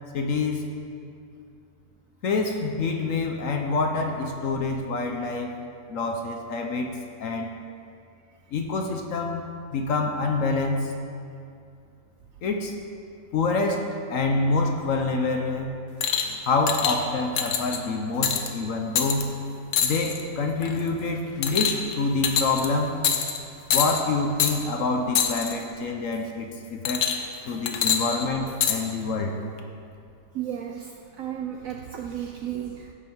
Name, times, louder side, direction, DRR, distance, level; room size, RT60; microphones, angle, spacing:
voice 1, 0.1-0.7 2.2-5.5 5.9-6.9 7.2-7.5 8.5-9.4 9.7-10.9 12.4-12.7 13.3-15.7 16.5-19.3 19.8-23.0 23.7-27.1 27.5-29.4, left 3 dB, 60° left, 3 dB, 0.9 m, -26 dB
sound 1, 16.0-16.3 16.7-17.0 17.4-17.8 18.2-18.5 19.0-19.2 19.7-20.2 20.6-20.9 21.4-21.9 22.2-22.7 23.0-23.4 23.7-24.0 24.4-24.5 25.1-25.5 26.8-27.3 27.7-28.8 29.6-29.7, left 8 dB, 80° left, 1.4 m, -25 dB
voice 2, 30.3-32.9, right 10 dB, 70° right, 3 dB, 0.8 m, -34 dB
15.5 x 5.5 x 4.5 m, 2.4 s
omnidirectional pair, 1.8 m